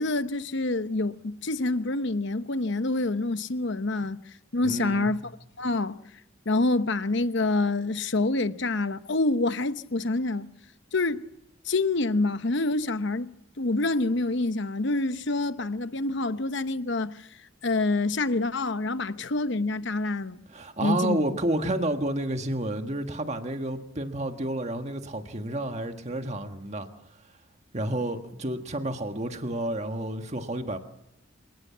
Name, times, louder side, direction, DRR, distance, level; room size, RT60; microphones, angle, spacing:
voice 1, 0.0-4.2 4.5-5.2 5.6-6.0 6.5-10.5 10.9-11.2 11.6-13.3 13.6-17.3 17.6-20.4 20.8-21.2, left 2 dB, 60° left, 0.9 m, -27 dB
voice 2, 4.6-5.1 20.5-26.9 27.7-30.8, right 1 dB, 35° right, 1.6 m, -30 dB
27.5 x 19.0 x 7.4 m
head